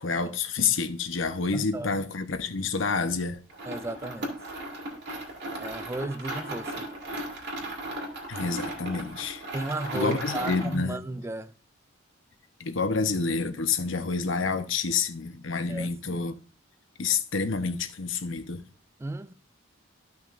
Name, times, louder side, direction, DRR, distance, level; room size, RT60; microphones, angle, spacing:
voice 1, 0.0-3.4 8.3-9.4 9.9-11.0 12.6-16.4 17.0-18.6, left 4 dB, 80° left, 0.9 m, -28 dB
voice 2, 1.5-1.9 3.7-4.3 5.6-6.9 9.5-11.5 15.7-16.2 19.0-19.3, right 2 dB, 15° right, 0.3 m, -34 dB
sound 1, 3.5-10.8, right 1 dB, 60° right, 2.4 m, -36 dB
13.0 x 5.8 x 2.5 m
head